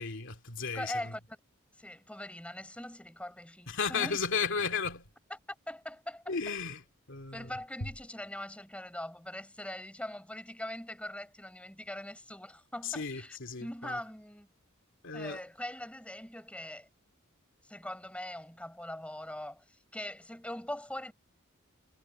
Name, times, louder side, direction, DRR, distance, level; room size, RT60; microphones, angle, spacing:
voice 1, 0.0-1.1 3.7-5.1 6.3-6.8 7.1-7.5 12.8-14.0 15.0-15.4, left 5 dB, 65° left, 2.5 m, -34 dB
voice 2, 0.7-1.4 1.8-4.2 5.7-6.4 7.3-14.5 15.1-16.9 17.6-21.1, left 1 dB, 5° left, 6.8 m, -42 dB
head